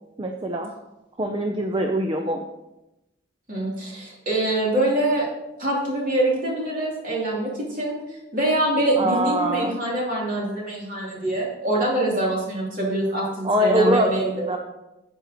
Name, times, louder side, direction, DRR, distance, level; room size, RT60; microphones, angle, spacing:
voice 1, 0.2-0.7 1.2-2.4 9.0-9.7 13.4-14.6, equal, 25° right, 3 dB, 0.5 m, -23 dB
voice 2, 3.5-5.3 5.6-8.0 8.3-14.6, right 1 dB, 45° right, -4 dB, 3.1 m, -24 dB
9.8 x 7.9 x 3.0 m, 0.94 s
head